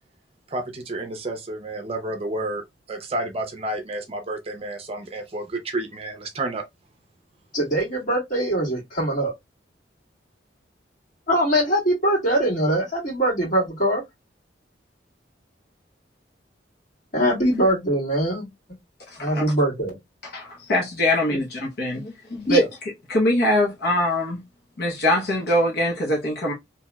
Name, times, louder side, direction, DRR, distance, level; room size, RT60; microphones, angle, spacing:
voice 1, 0.5-6.6, right 2 dB, 35° right, 0.5 m, -30 dB
voice 2, 7.5-9.3 11.3-14.0 17.1-18.5 19.2-20.0 21.3-21.4 22.5-22.7, right 1 dB, 45° left, 1.9 m, -22 dB
voice 3, 19.2-19.5 20.3-22.6 23.1-24.4 24.8-26.5, left 1 dB, 60° left, 0.8 m, -23 dB
3.0 x 2.8 x 2.2 m
head